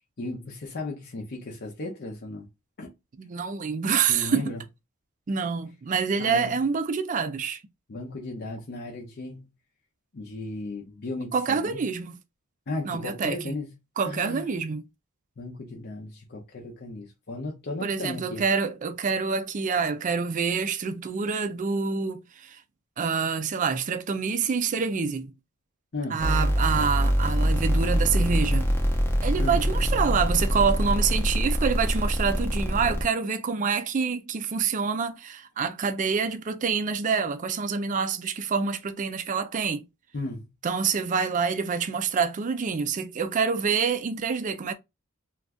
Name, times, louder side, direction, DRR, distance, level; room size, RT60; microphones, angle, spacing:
voice 1, 0.2-2.5 2.8-2.9 4.1-4.6 6.2-6.5 7.9-9.4 10.1-11.8 12.7-13.7 14.0-14.4 15.4-18.4 25.9-26.3 29.4-29.6 40.1-40.5, left 2 dB, 50° left, 0.6 m, -35 dB
voice 2, 3.2-4.5 5.3-7.6 11.3-12.2 12.8-13.6 14.0-14.8 17.8-22.6 23.0-25.3 26.1-28.7 29.2-39.8 40.6-44.7, right 5 dB, 35° right, 0.4 m, -27 dB
sound 1, 26.2-33.0, equal, 10° left, 0.6 m, -24 dB
2.5 x 2.3 x 3.3 m
head